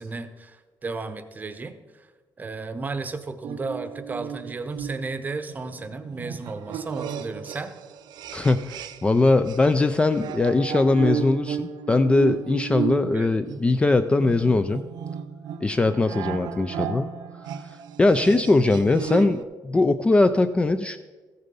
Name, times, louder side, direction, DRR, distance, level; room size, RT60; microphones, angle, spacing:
voice 1, 0.0-2.1 2.4-7.7 13.1-13.4, right 3 dB, 25° right, 10 dB, 0.8 m, -34 dB
sound 1, 3.4-9.2 9.5-19.4, right 8 dB, 85° right, 0.6 m, -34 dB
voice 2, 8.3-14.8 15.6-17.1 18.0-21.0, left 2 dB, 15° left, 10 dB, 0.3 m, -21 dB
14.5 x 6.7 x 5.3 m, 1.3 s
cardioid pair, 145°, 7 cm